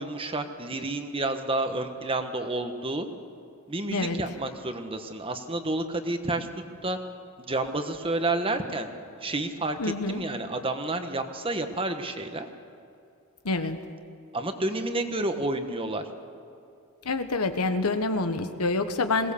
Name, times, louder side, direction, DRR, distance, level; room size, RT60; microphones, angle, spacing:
voice 1, 0.0-3.1 3.7-6.5 6.8-7.0 7.4-8.9 9.2-12.5 14.3-16.1, right 2 dB, 25° right, 7 dB, 1.2 m, -30 dB
voice 2, 3.9-4.2 9.8-10.2 13.4-13.8 17.0-19.3, left 3 dB, 85° left, 8 dB, 1.3 m, -27 dB
21.5 x 18.0 x 7.1 m, 2.5 s
head